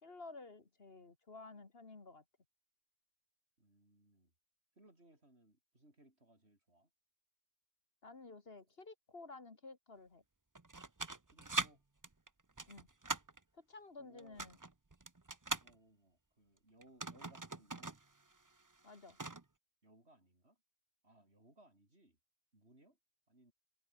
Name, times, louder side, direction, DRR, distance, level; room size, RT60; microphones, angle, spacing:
voice 1, 0.0-2.2 8.0-10.2 12.7-12.9 13.5-14.6 18.8-19.2, left 3 dB, 50° left, 2.3 m, -53 dB
voice 2, 3.6-4.3 4.8-6.9 11.3-11.8 14.0-14.6 15.6-18.0 19.8-20.6 21.0-22.2 22.5-23.0 23.3-23.5, right 1 dB, 60° right, 6.9 m, -66 dB
sound 1, 10.5-11.7 12.0-13.4 14.2-15.7 16.8-18.0 18.3-18.4 18.8-19.4, right 3 dB, 20° right, 0.8 m, -41 dB
omnidirectional pair, 1.3 m